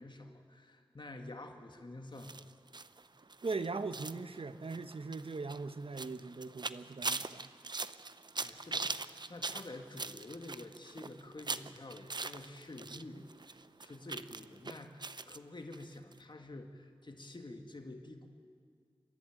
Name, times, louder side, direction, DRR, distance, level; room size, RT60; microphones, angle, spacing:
voice 1, 0.0-2.4 8.4-18.3, left 2 dB, 50° left, 4 dB, 2.0 m, -49 dB
sound 1, 2.2-13.0 13.3-15.4 15.7-15.8 16.1-16.2, right 3 dB, 50° right, 0.6 m, -42 dB
voice 2, 3.4-7.5, right 4 dB, 70° right, 11 dB, 0.9 m, -40 dB
28.0 x 11.5 x 8.8 m, 2.1 s
wide cardioid pair, 50°, 10 cm